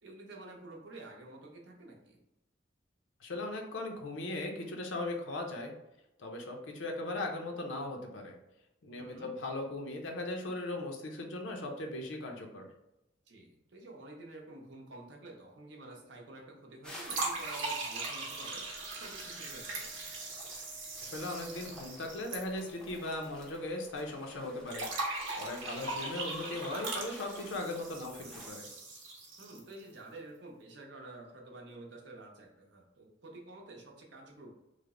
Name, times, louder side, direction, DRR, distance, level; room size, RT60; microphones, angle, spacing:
voice 1, 0.0-2.2 9.0-9.3 13.3-18.6 18.9-20.0 25.7-25.9 28.2-28.4 29.4-34.5, right 2 dB, 65° right, 0 dB, 0.7 m, -50 dB
voice 2, 3.2-5.7 6.2-8.4 8.8-12.7 21.0-24.9 25.4-28.7, left 2 dB, 75° left, 2 dB, 0.6 m, -38 dB
sound 1, 16.8-28.5, left 1 dB, 5° left, 0.5 m, -53 dB
sound 2, 17.0-23.2 23.5-23.6 24.7-29.7, right 2 dB, 90° right, 0.9 m, -39 dB
Wind instrument woodwind instrument, 17.6-25.4, left 4 dB, 20° right, 1.0 m, -62 dB
3.2 x 2.0 x 3.6 m, 0.92 s
head